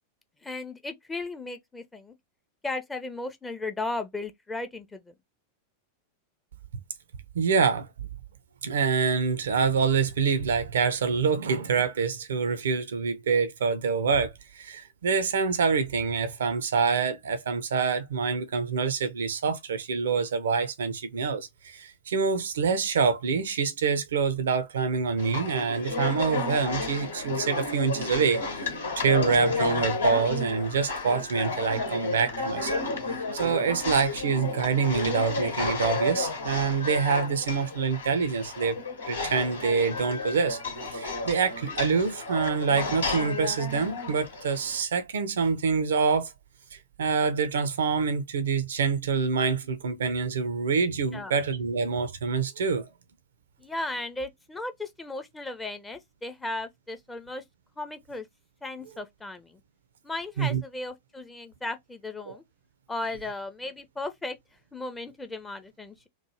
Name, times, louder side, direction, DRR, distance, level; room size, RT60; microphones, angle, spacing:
voice 1, 0.4-2.1 2.6-5.1 51.1-51.3 53.6-57.4 57.8-58.3 58.6-59.6 60.0-62.4 62.9-64.4 64.7-66.1, left 2 dB, 10° left, 0.5 m, -36 dB
voice 2, 7.3-7.9 8.6-38.8 39.0-40.6 40.9-46.3 46.7-52.9 60.4-60.6 62.3-62.4, right 5 dB, 65° right, 0.4 m, -26 dB
sound 1, 25.2-44.8, left 3 dB, 70° left, 0.9 m, -32 dB
3.0 x 2.1 x 2.9 m
figure-of-eight pair, 90°, 0 cm